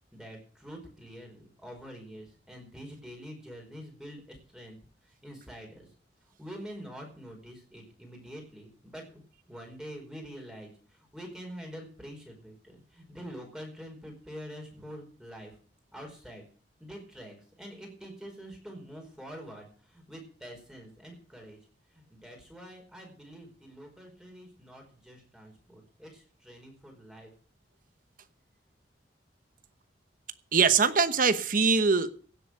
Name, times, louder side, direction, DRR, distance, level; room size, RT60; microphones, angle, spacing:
voice 1, 0.1-4.8 5.0-5.9 6.4-15.5 15.9-16.4 16.8-21.6 21.9-27.3, equal, 5° right, 1 dB, 4.8 m, -46 dB
voice 2, 30.5-32.1, right 5 dB, 50° right, 11 dB, 1.1 m, -22 dB
16.5 x 8.1 x 6.5 m, 0.42 s
head